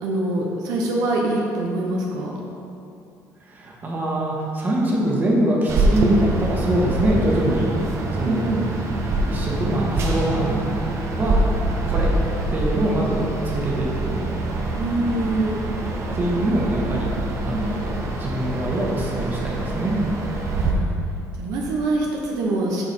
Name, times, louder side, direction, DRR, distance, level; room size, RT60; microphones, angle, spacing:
voice 1, 0.0-2.3 8.2-8.7 14.7-15.7 20.5-20.9 21.4-22.8, right 2 dB, 80° right, -1 dB, 1.0 m, -24 dB
voice 2, 3.4-8.6 9.2-10.7 11.2-11.4 11.8-12.1 12.5-14.2 16.1-17.9 18.2-19.9, right 1 dB, 30° right, -3 dB, 1.5 m, -24 dB
sound 1, 5.7-20.7, right 2 dB, 50° right, 0.9 m, -25 dB
9.0 x 4.7 x 4.4 m, 2.7 s
cardioid pair, 125°, 6 cm